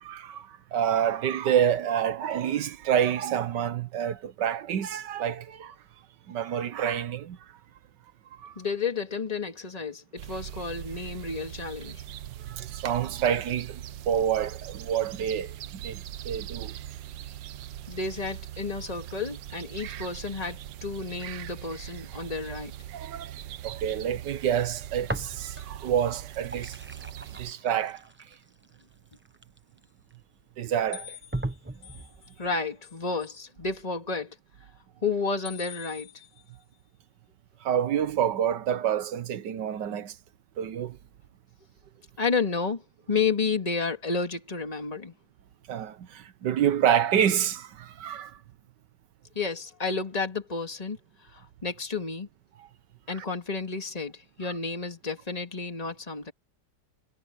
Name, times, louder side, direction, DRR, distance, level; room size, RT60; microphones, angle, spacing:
voice 1, 0.0-5.7 6.3-7.4 8.4-8.5 12.4-15.5 15.8-16.7 22.9-23.3 23.6-26.8 27.4-28.0 30.6-31.2 37.6-40.1 40.6-41.0 45.7-48.4 53.2-53.3, right 9 dB, 70° right, 1.5 m, -28 dB
voice 2, 8.6-12.0 17.9-22.7 32.4-34.4 35.0-36.1 42.2-42.8 43.1-45.1 49.3-51.0 51.3-52.3 53.1-56.3, left 4 dB, 20° left, 2.5 m, -31 dB
sound 1, 10.2-27.5, right 12 dB, 85° right, 1.5 m, -41 dB
sound 2, 25.0-25.8 26.1-30.1 30.7-30.8 31.3-32.2, right 2 dB, 10° right, 0.5 m, -38 dB
sound 3, 30.9-32.5 32.8-33.3 35.5-36.6, left 11 dB, 75° left, 1.7 m, -46 dB
omnidirectional pair, 2.0 m